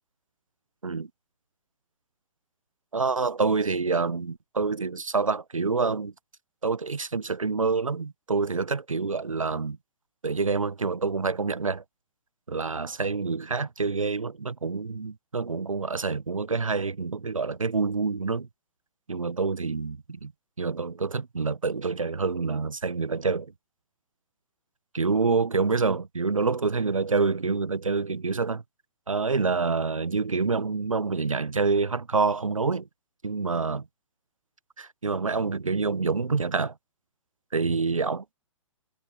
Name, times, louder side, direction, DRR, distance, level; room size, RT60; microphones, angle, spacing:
voice 1, 2.9-6.1 6.6-9.8 10.2-11.8 12.5-18.5 19.1-20.3 20.6-23.5 24.9-28.6 29.1-32.8 33.2-33.8 34.8-36.7 37.5-38.3, right 4 dB, 85° right, 1.1 m, -27 dB
figure-of-eight pair, 125°, 17 cm